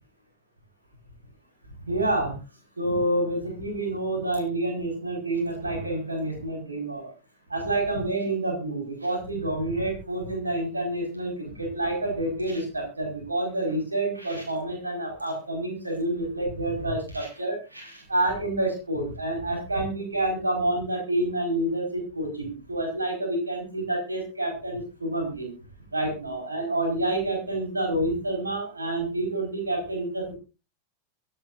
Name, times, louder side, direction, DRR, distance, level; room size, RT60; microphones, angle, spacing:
voice 1, 1.9-2.4 2.8-7.1 7.5-25.5 25.9-30.3, right 1 dB, 80° right, -1 dB, 4.9 m, -28 dB
24.0 x 9.1 x 2.6 m, 0.29 s
figure-of-eight pair, 90°, 0 cm